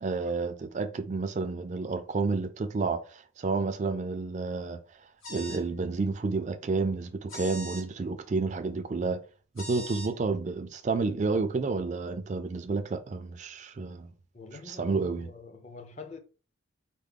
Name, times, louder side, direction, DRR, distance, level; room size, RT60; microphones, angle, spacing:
voice 1, 0.0-4.8 5.3-9.2 9.6-14.1 14.7-15.3, right 4 dB, 35° right, 0.3 m, -30 dB
sound 1, 5.2-5.7 7.3-7.8 9.6-10.1, left 1 dB, 85° left, 1.2 m, -41 dB
voice 2, 14.3-16.2, left 3 dB, 35° left, 0.5 m, -45 dB
4.6 x 2.0 x 3.6 m
head